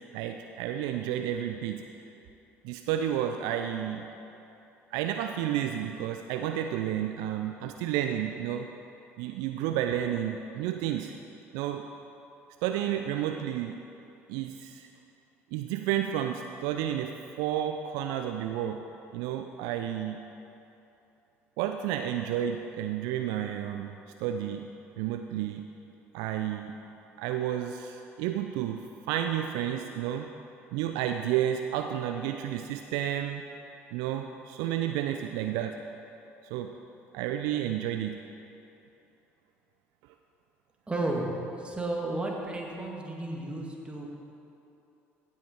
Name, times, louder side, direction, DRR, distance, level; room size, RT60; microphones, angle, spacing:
voice 1, 0.1-1.8 2.6-4.1 4.9-8.7 9.2-11.1 11.5-11.9 12.6-13.8 14.3-14.9 15.5-18.8 19.1-20.2 21.6-23.9 24.2-24.7 25.0-25.7 26.1-26.7 27.2-30.3 30.7-33.4 33.9-35.8 36.4-36.7 37.1-38.2, right 10 dB, 65° right, 5 dB, 0.4 m, -31 dB
voice 2, 40.9-44.1, right 2 dB, 15° right, -1 dB, 2.0 m, -33 dB
16.5 x 5.7 x 4.4 m, 2.9 s
hypercardioid pair, 60°, 7 cm